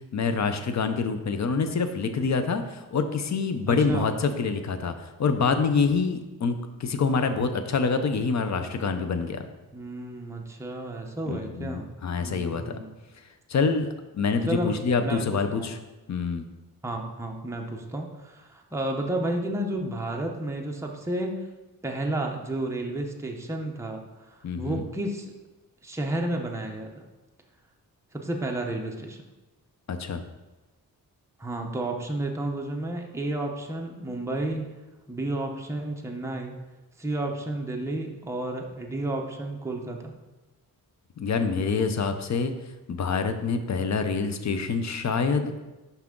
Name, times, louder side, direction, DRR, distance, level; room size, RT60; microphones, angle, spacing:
voice 1, 0.1-9.5 11.3-12.8 13.5-15.8 16.1-16.5 24.4-24.8 29.9-30.2 41.2-42.5 42.9-45.6, left 5 dB, 50° left, 8 dB, 0.6 m, -26 dB
voice 2, 3.7-4.1 9.7-11.9 12.2-12.9 14.5-15.2 15.5-15.7 16.8-21.5 21.8-25.3 25.8-27.0 28.1-29.2 31.4-34.7 35.1-36.6 37.0-40.1, right 1 dB, 10° right, 1 dB, 0.7 m, -32 dB
5.9 x 5.7 x 3.7 m, 1.1 s
wide cardioid pair, 115°, 36 cm